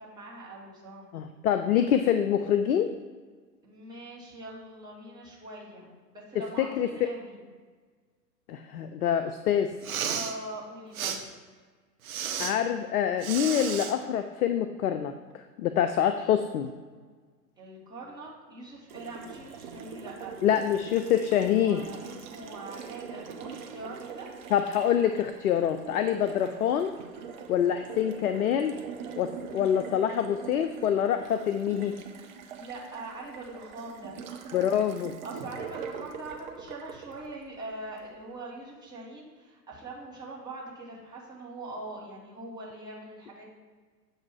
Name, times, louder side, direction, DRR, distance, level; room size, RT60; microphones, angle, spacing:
voice 1, 0.0-1.1 3.6-5.9 6.1-7.4 10.1-11.3 17.6-20.3 21.3-24.3 32.6-34.2 35.2-43.5, right 2 dB, 10° right, -6 dB, 1.5 m, -42 dB
voice 2, 1.1-2.9 6.6-7.1 8.5-9.7 12.4-16.7 20.4-21.8 24.5-26.9 27.5-28.8 29.2-32.0 34.5-35.1, left 9 dB, 60° left, 8 dB, 0.5 m, -26 dB
Respiratory sounds, 9.7-10.3 10.9-11.2 12.0-12.5 13.2-13.9, right 8 dB, 55° right, 0.8 m, -32 dB
Water tap faucet, 18.9-38.1, right 6 dB, 30° right, 0.5 m, -43 dB
7.3 x 2.7 x 5.8 m, 1.5 s
figure-of-eight pair, 105°, 50 cm